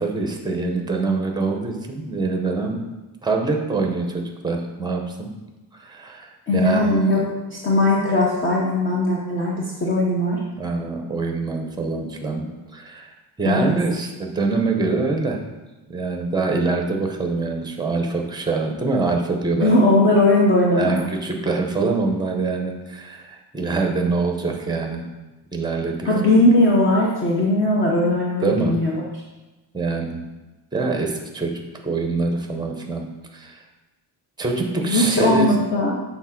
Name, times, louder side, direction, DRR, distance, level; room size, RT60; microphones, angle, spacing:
voice 1, 0.0-2.8 3.2-5.3 5.8-6.8 10.6-12.4 12.7-13.1 13.4-15.4 15.9-19.8 20.8-25.1 25.5-26.1 28.4-28.7 29.7-30.2 30.7-33.1 33.3-33.6 34.4-35.5, right 3 dB, 10° right, 3 dB, 0.7 m, -24 dB
voice 2, 6.5-7.2 7.5-10.4 13.4-13.7 19.6-21.0 26.0-29.0 34.8-36.0, left 1 dB, 30° left, -4 dB, 0.8 m, -19 dB
7.2 x 3.8 x 5.8 m, 1.1 s
cardioid pair, 175°, 43 cm